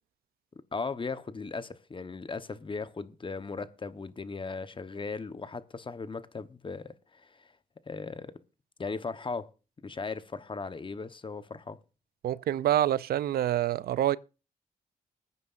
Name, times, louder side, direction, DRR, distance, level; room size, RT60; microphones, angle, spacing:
voice 1, 0.7-7.5 7.8-8.4 8.8-9.5 9.8-11.8, left 4 dB, 35° left, 1.0 m, -37 dB
voice 2, 12.2-14.2, right 12 dB, 90° right, 0.5 m, -26 dB
21.0 x 9.4 x 2.5 m
cardioid pair, 85°, 15 cm